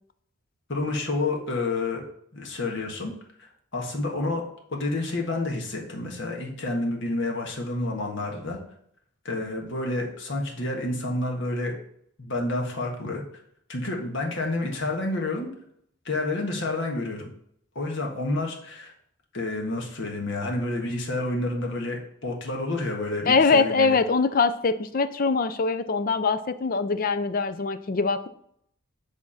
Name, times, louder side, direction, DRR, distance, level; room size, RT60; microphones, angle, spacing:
voice 1, 0.7-2.0 2.3-3.1 3.4-4.4 4.7-8.6 9.2-11.7 12.2-13.2 13.7-15.5 16.0-17.3 17.7-18.9 19.3-24.0, left 2 dB, 55° left, 0 dB, 1.5 m, -29 dB
voice 2, 23.3-28.3, left 4 dB, 40° left, 12 dB, 0.4 m, -23 dB
8.7 x 3.6 x 5.6 m, 0.69 s
head